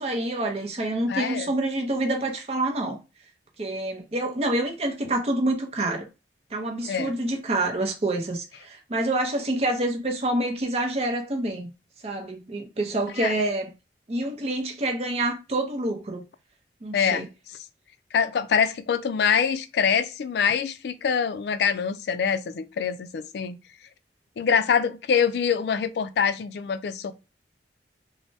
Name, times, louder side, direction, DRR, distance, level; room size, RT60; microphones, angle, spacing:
voice 1, 0.0-3.0 3.6-6.1 6.5-11.7 12.0-13.7 14.1-16.2 16.8-17.3, right 1 dB, 35° right, 0.6 m, -27 dB
voice 2, 1.1-1.5 6.9-7.1 13.2-13.4 16.9-17.6 18.1-23.6 24.4-27.1, left 7 dB, 65° left, 0.3 m, -25 dB
3.3 x 2.0 x 2.6 m
head